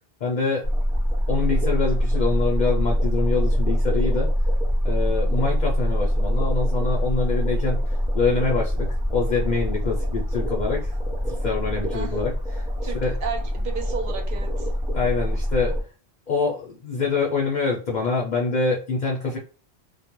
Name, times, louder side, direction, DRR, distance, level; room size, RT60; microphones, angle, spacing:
voice 1, 0.2-0.7 1.3-4.3 4.8-7.8 8.1-10.9 11.3-12.6 12.9-13.2 14.9-15.7 16.3-19.4, left 4 dB, 50° left, -1 dB, 0.6 m, -25 dB
sound 1, 0.6-15.8, equal, 5° right, 0.4 m, -24 dB
voice 2, 12.8-14.7, right 6 dB, 60° right, 3 dB, 0.7 m, -33 dB
2.3 x 2.1 x 2.9 m, 0.37 s
omnidirectional pair, 1.1 m